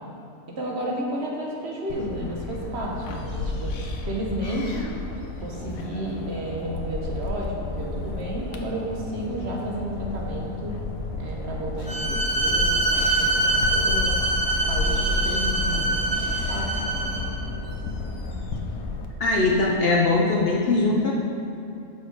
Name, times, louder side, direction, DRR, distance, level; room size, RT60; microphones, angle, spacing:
voice 1, 0.6-3.7 4.0-4.8 5.4-10.8 11.2-17.3, right 1 dB, 55° right, -2 dB, 1.2 m, -32 dB
sound 1, 1.9-19.1, left 3 dB, 90° left, 1.1 m, -31 dB
Bowed string instrument, 11.9-17.4, right 2 dB, 15° left, 1.4 m, -24 dB
voice 2, 19.2-21.1, left 3 dB, 55° left, -2 dB, 0.7 m, -21 dB
6.0 x 5.6 x 4.7 m, 2.7 s
omnidirectional pair, 1.4 m